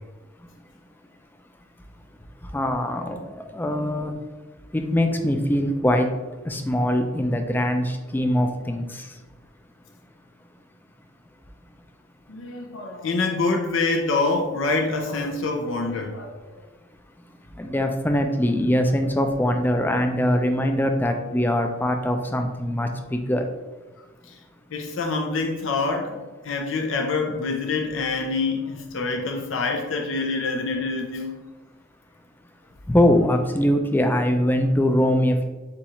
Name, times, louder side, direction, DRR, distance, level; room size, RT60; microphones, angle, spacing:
voice 1, 2.5-3.2 3.5-4.1 4.7-6.1 6.4-9.0 17.6-23.4 32.9-35.4, left 1 dB, 10° left, 5 dB, 0.4 m, -22 dB
voice 2, 12.3-16.3 24.7-31.4, left 3 dB, 75° left, 3 dB, 0.6 m, -26 dB
6.9 x 2.4 x 3.0 m, 1.2 s
head